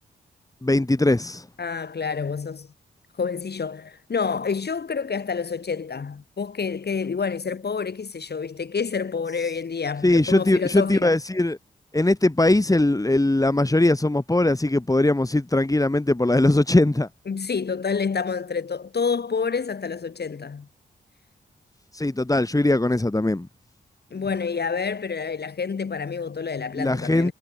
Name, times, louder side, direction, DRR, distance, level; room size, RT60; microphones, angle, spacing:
voice 1, 0.6-1.4 10.0-11.6 11.9-17.1 21.9-23.5 26.7-27.3, left 2 dB, 20° left, 3.5 m, -20 dB
voice 2, 1.6-2.7 3.2-11.1 17.3-20.7 24.1-27.3, left 5 dB, 60° left, 5.2 m, -28 dB
cardioid pair, 50°, 19 cm